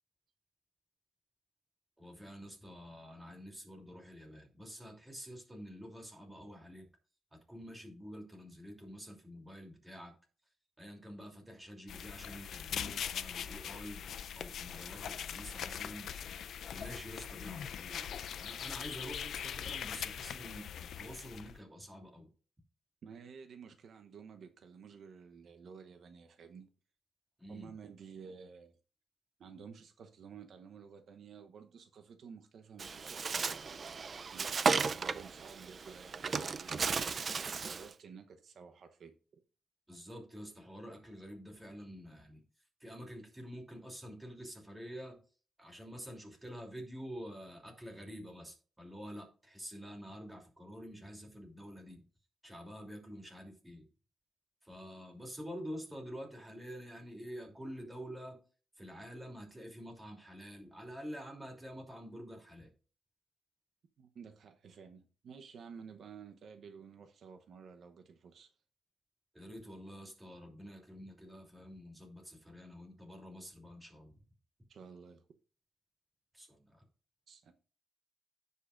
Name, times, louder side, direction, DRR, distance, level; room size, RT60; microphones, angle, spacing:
voice 1, 2.0-6.9 7.3-10.1 10.8-14.0 14.3-16.1 16.7-22.3 27.4-27.7 39.9-42.4 42.8-45.2 45.6-52.0 52.4-53.9 54.6-58.4 58.8-62.7 69.3-74.2 76.3-76.8, equal, 10° right, 3.0 m, -48 dB
sound 1, 11.9-21.6, left 9 dB, 80° left, 0.5 m, -41 dB
voice 2, 23.0-26.7 27.5-28.8 29.4-33.6 34.3-39.4 64.0-68.5 74.7-75.2 77.3-77.5, right 6 dB, 65° right, 0.8 m, -53 dB
Bird, 32.8-37.9, right 5 dB, 45° right, 0.4 m, -35 dB
16.0 x 5.5 x 2.5 m
cardioid pair, 115°, 0 cm